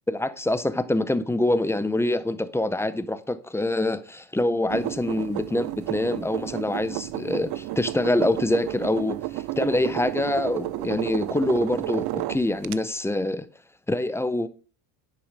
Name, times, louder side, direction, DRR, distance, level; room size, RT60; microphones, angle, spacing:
voice 1, 0.1-13.5 13.9-14.5, left 1 dB, 5° left, 0.5 m, -25 dB
sound 1, 4.7-12.8, right 17 dB, 50° right, 0.5 m, -32 dB
10.5 x 4.8 x 5.2 m
cardioid pair, 120°, 47 cm